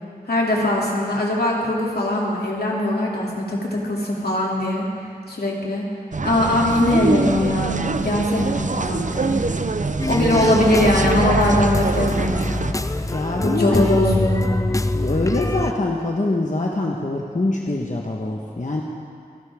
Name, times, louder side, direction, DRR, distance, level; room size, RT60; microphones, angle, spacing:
voice 1, 0.3-4.9 5.3-5.8 6.2-9.4 10.1-12.6 13.4-14.5, left 1 dB, 80° left, -3 dB, 2.7 m, -21 dB
sound 1, 6.1-12.7, right 3 dB, 50° right, 0.6 m, -24 dB
sound 2, 10.0-15.7, left 2 dB, 20° left, 0.5 m, -24 dB
voice 2, 10.2-10.6 13.0-13.8 14.9-18.8, left 2 dB, 50° left, -1 dB, 1.2 m, -24 dB
25.0 x 12.0 x 3.6 m, 2.3 s
wide cardioid pair, 45°, 16 cm